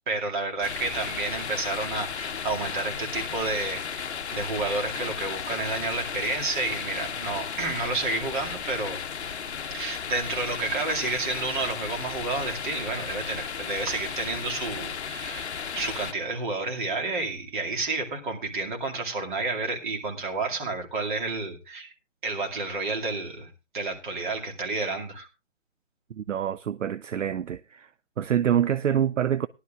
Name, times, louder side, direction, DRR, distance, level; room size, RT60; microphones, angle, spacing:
voice 1, 0.0-9.0 9.7-21.9 22.2-25.3, right 3 dB, 40° right, 2.4 m, -30 dB
sound 1, 0.6-16.1, left 7 dB, 60° left, 0.7 m, -34 dB
voice 2, 26.1-27.9 28.2-29.5, right 9 dB, 75° right, 0.5 m, -26 dB
18.5 x 11.5 x 2.4 m
figure-of-eight pair, 140°, 38 cm